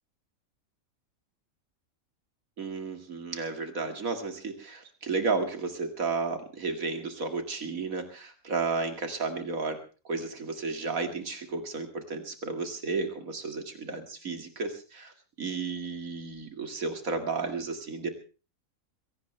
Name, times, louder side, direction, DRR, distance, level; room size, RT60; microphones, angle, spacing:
voice 1, 2.6-9.8 10.0-15.1 15.4-18.1, right 4 dB, 75° right, 6 dB, 2.7 m, -33 dB
22.5 x 17.0 x 3.3 m, 0.35 s
omnidirectional pair, 1.5 m